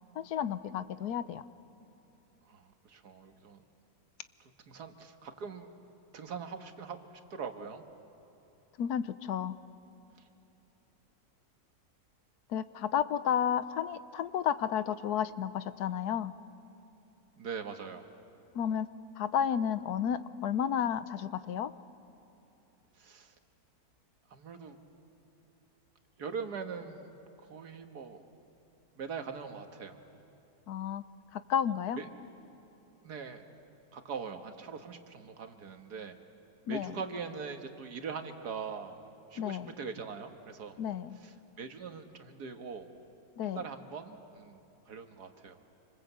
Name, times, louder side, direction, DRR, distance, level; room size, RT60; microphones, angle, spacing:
voice 1, 0.2-1.4 8.8-9.6 12.5-16.3 18.5-18.9 19.2-21.7 30.7-31.0 31.3-32.0 36.7-36.9 39.4-39.7 40.8-41.2 43.4-43.6, left 9 dB, 80° left, 14 dB, 1.3 m, -32 dB
voice 2, 2.5-3.6 4.7-5.7 6.1-7.9 17.4-18.1 23.0-23.3 24.3-24.8 26.2-27.1 27.5-28.2 29.0-30.0 32.0-32.1 33.0-33.4 33.9-36.2 36.7-39.0 39.3-40.8 41.2-42.9 43.5-44.6 44.9-45.6, right 5 dB, 85° right, 6 dB, 2.0 m, -42 dB
27.5 x 25.5 x 8.1 m, 3.0 s
omnidirectional pair, 1.7 m